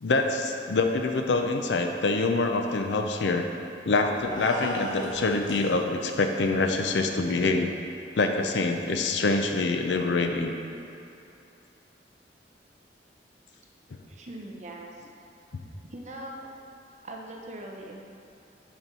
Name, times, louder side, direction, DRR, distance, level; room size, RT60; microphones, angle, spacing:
voice 1, 0.0-3.5 3.8-7.7 8.1-10.5, left 3 dB, 85° left, 5 dB, 0.5 m, -25 dB
sound 1, 4.2-5.7, left 1 dB, 50° left, 1.5 m, -36 dB
voice 2, 14.1-15.1 15.9-16.5 17.0-18.0, right 1 dB, 40° right, 0 dB, 0.7 m, -41 dB
5.6 x 4.5 x 5.6 m, 2.8 s
head